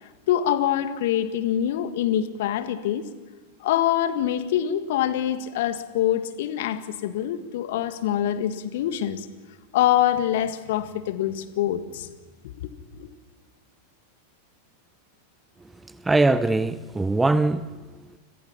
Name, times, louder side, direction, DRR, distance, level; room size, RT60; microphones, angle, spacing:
voice 1, 0.3-3.0 3.6-9.3 9.7-12.1 12.4-12.7 13.0-13.1, left 11 dB, 55° left, 1.8 m, -25 dB
voice 2, 15.6-18.2, right 2 dB, 10° right, 0.8 m, -23 dB
29.5 x 26.0 x 5.9 m
figure-of-eight pair, 90°, 0 cm